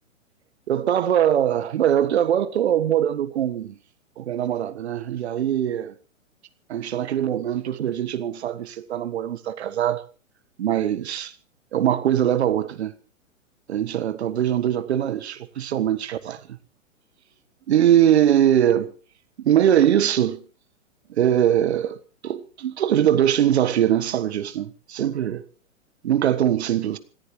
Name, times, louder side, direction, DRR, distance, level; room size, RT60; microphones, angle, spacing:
voice 1, 0.7-3.7 4.2-5.9 6.7-10.0 10.6-11.3 11.7-12.9 13.7-16.4 17.7-18.9 19.4-20.4 21.2-22.0 22.2-25.4 26.0-27.0, right 10 dB, 55° right, 1.5 m, -22 dB
26.5 x 14.5 x 3.2 m
figure-of-eight pair, 110°, 39 cm